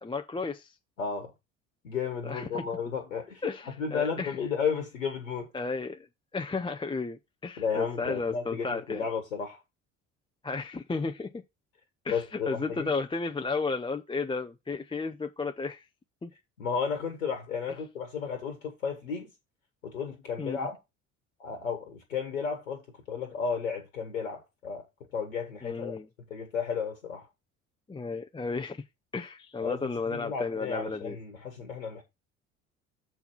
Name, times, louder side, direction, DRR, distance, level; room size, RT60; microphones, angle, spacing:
voice 1, 0.0-0.8 2.2-2.6 3.4-4.4 5.5-6.1 6.3-9.1 10.4-11.4 12.0-15.9 16.2-16.3 20.4-20.7 25.6-26.1 27.9-28.8 29.1-31.2, left 4 dB, 15° left, 0.7 m, -33 dB
voice 2, 1.0-1.3 1.8-3.5 3.8-5.5 7.6-9.6 12.1-12.9 16.6-19.3 19.8-20.8 21.4-22.8 23.1-24.8 25.1-26.0 26.3-27.2 29.6-32.0, left 6 dB, 90° left, 1.5 m, -33 dB
7.0 x 4.6 x 5.4 m
hypercardioid pair, 60°, 39 cm